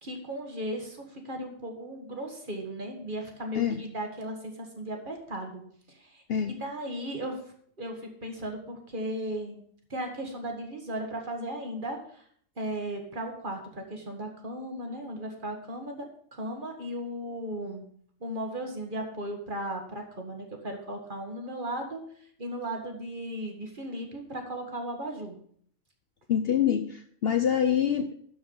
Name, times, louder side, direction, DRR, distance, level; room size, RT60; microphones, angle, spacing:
voice 1, 0.0-5.6 5.9-7.4 7.8-9.6 9.9-12.2 12.6-17.8 18.2-22.0 22.4-25.4, right 1 dB, 40° right, 3 dB, 1.6 m, -36 dB
voice 2, 26.3-28.2, left 9 dB, 60° left, 7 dB, 0.7 m, -25 dB
12.0 x 4.7 x 5.3 m, 0.62 s
omnidirectional pair, 1.4 m